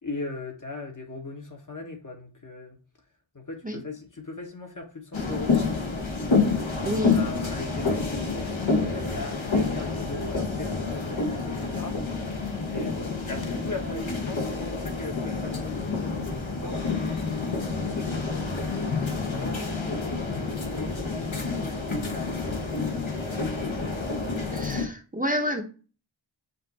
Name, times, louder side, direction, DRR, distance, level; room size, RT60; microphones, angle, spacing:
voice 1, 0.0-2.8 3.3-6.2 6.8-12.3 12.6-17.1 17.9-23.7, left 3 dB, 40° left, 1.1 m, -39 dB
sound 1, 5.1-24.8, left 4 dB, 75° left, 1.1 m, -28 dB
voice 2, 6.8-7.2 24.5-25.6, equal, 20° right, 0.7 m, -28 dB
5.2 x 2.5 x 4.0 m
wide cardioid pair, 50°, 47 cm